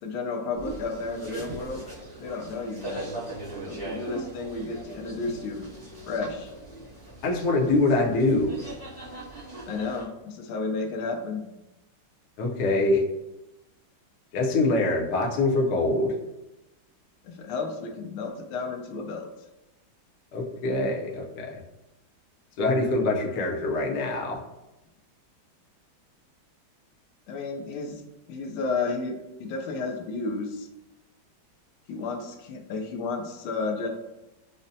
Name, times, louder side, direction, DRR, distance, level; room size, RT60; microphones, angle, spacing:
voice 1, 0.0-1.8 2.2-3.1 3.7-5.6 6.1-6.5 9.6-11.4 17.2-19.3 27.3-28.0 28.3-30.7 31.9-33.9, left 4 dB, 90° left, 3 dB, 1.4 m, -32 dB
sound 1, 0.5-10.0, right 2 dB, 5° left, 0.5 m, -40 dB
voice 2, 7.2-8.5 12.4-13.0 14.3-16.1 20.3-21.5 22.6-24.4, left 2 dB, 70° left, -1 dB, 1.0 m, -24 dB
5.1 x 2.1 x 2.6 m, 0.97 s
omnidirectional pair, 2.2 m